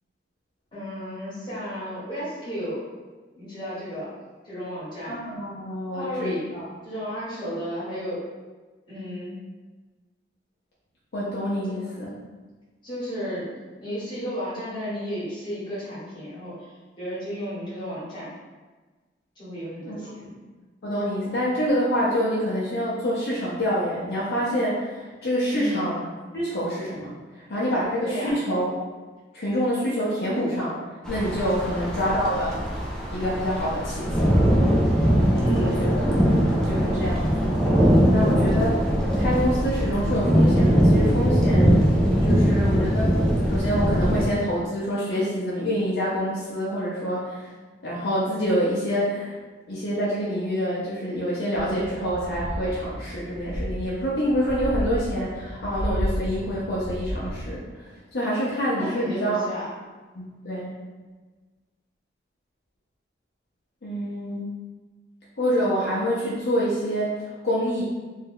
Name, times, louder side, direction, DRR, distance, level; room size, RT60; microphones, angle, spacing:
voice 1, 0.7-2.8 3.4-4.1 4.4-5.2 5.9-6.5 6.8-8.2 8.9-9.4 12.8-13.5 13.8-18.3 19.4-20.3 25.5-25.8 28.0-28.5 31.6-31.8 35.3-35.8 58.7-59.7, equal, 25° left, -10 dB, 1.3 m, -33 dB
voice 2, 5.1-6.7 11.1-12.1 19.8-20.0 20.8-26.0 26.3-28.7 29.3-30.8 31.1-32.7 33.1-34.7 35.6-36.0 36.6-37.3 38.1-43.1 43.5-47.5 47.8-49.4 49.7-59.4 60.1-60.7 63.8-64.5 65.4-67.8, equal, 60° left, -8 dB, 0.6 m, -27 dB
sound 1, 31.0-44.2, equal, 5° left, 0.4 m, -21 dB
sound 2, 51.5-57.6, equal, 25° right, 0.8 m, -32 dB
2.6 x 2.2 x 3.5 m, 1.3 s
head